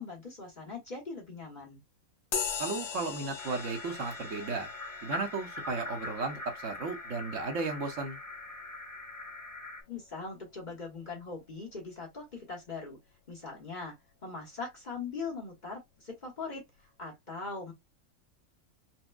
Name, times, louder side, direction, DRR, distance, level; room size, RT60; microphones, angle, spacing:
voice 1, 0.0-1.8 9.9-13.0 13.3-14.0 14.2-16.6 17.0-17.7, left 4 dB, 35° left, 1.2 m, -41 dB
sound 1, 2.3-10.2, left 6 dB, 75° left, 1.2 m, -41 dB
voice 2, 2.6-4.7 5.0-8.2, right 4 dB, 65° right, 1.1 m, -34 dB
sound 2, 3.4-9.8, left 2 dB, 15° left, 0.8 m, -42 dB
4.2 x 2.2 x 2.2 m
omnidirectional pair, 1.4 m